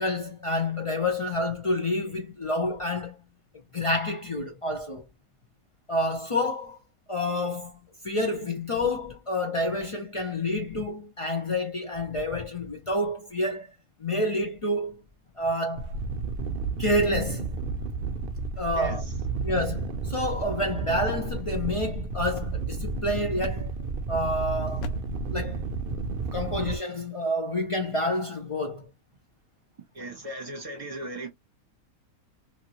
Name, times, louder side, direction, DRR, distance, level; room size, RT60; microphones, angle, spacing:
voice 1, 0.0-3.2 3.7-5.1 5.9-6.8 7.1-7.8 8.0-13.7 14.0-15.0 15.4-15.9 16.8-17.5 18.6-19.0 19.4-23.7 24.1-24.9 25.3-25.6 26.3-28.9, left 1 dB, 55° left, 0.3 m, -28 dB
sound 1, 15.8-26.8, right 4 dB, 65° right, 0.6 m, -32 dB
voice 2, 18.7-19.1 29.9-31.3, right 1 dB, 25° right, 1.1 m, -37 dB
sound 2, 21.1-23.0 23.4-23.9 24.8-25.2, left 3 dB, 85° left, 1.1 m, -43 dB
2.8 x 2.8 x 2.7 m
omnidirectional pair, 1.5 m